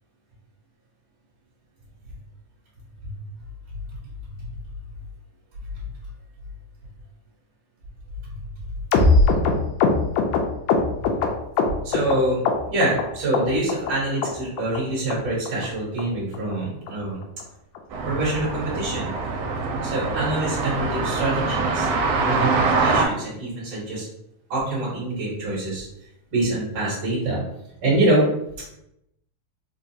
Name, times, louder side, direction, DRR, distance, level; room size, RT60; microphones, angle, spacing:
sound 1, 8.9-12.2 12.4-13.0 13.3-13.9 14.2-14.3 14.6-14.8 15.1-15.2 15.5-15.7 16.0-16.1 16.3-16.5 16.9-17.0 17.2-17.4 17.7-17.8 18.1-18.3 18.6-18.7, left 4 dB, 80° left, 1.6 m, -20 dB
voice 1, 11.8-17.3 18.0-19.1 19.8-21.9 22.2-24.1 24.5-25.9 26.3-27.4 27.8-28.3, right 1 dB, 50° right, -8 dB, 1.6 m, -25 dB
sound 2, 17.9-23.1, right 3 dB, 85° right, 2.0 m, -24 dB
4.8 x 2.3 x 2.7 m, 0.81 s
omnidirectional pair, 3.4 m